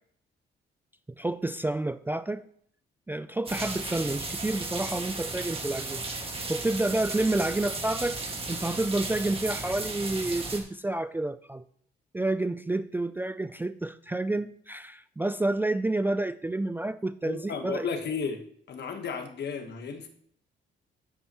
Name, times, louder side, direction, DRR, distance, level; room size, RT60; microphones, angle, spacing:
voice 1, 1.2-2.4 3.1-6.0 6.5-8.2 8.5-11.6 12.1-17.9, right 2 dB, 10° right, 12 dB, 0.3 m, -29 dB
sound 1, 3.5-10.6, right 3 dB, 30° right, 1.9 m, -35 dB
voice 2, 17.2-18.4 18.7-20.1, left 5 dB, 60° left, 6 dB, 1.4 m, -33 dB
10.0 x 9.9 x 3.0 m, 0.64 s
cardioid pair, 90°, 20 cm